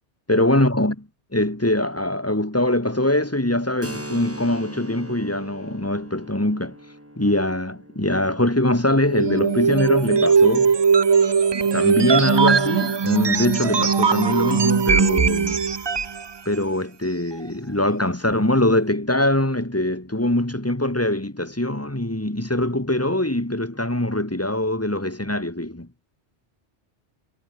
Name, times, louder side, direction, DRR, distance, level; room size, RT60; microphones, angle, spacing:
voice 1, 0.3-0.9 1.3-6.7 7.2-10.8 11.6-15.6 16.5-25.9, left 1 dB, 10° left, 2.5 m, -23 dB
Keyboard (musical), 3.8-11.2, equal, 10° right, 7.0 m, -41 dB
sound 1, 9.1-16.2, right 5 dB, 40° right, 0.4 m, -19 dB
omnidirectional pair, 1.2 m